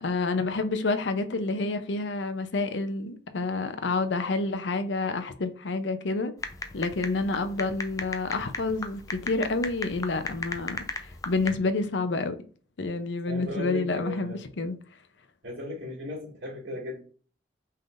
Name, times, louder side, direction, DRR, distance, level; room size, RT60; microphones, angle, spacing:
voice 1, 0.0-6.3 6.7-12.4 12.8-14.8, left 3 dB, 75° left, 0.6 m, -29 dB
sound 1, 6.4-11.5, left 3 dB, 20° left, 0.5 m, -36 dB
voice 2, 13.3-14.4 15.4-17.0, left 1 dB, 80° right, 2.3 m, -36 dB
5.6 x 3.5 x 2.5 m
head